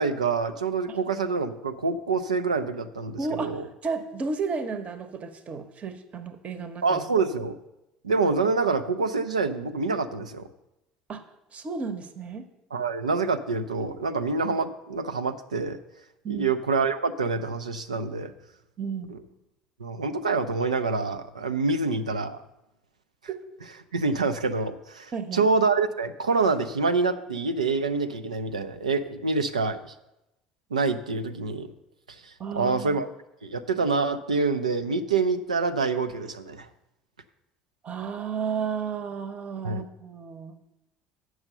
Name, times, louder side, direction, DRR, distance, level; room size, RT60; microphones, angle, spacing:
voice 1, 0.0-3.7 6.8-7.6 8.0-10.5 12.7-15.8 16.3-18.3 19.1-19.2 19.8-22.4 23.9-29.9 30.7-31.7 32.2-33.1 33.4-36.7 39.6-39.8, right 4 dB, 85° right, 9 dB, 0.4 m, -26 dB
voice 2, 3.2-7.0 11.1-11.2 11.5-12.5 16.2-16.5 18.8-19.1 23.3-23.4 25.1-25.4 32.4-33.0 37.8-40.6, right 5 dB, 35° right, 10 dB, 0.9 m, -33 dB
8.7 x 6.2 x 6.7 m, 0.91 s
figure-of-eight pair, 60°, 4 cm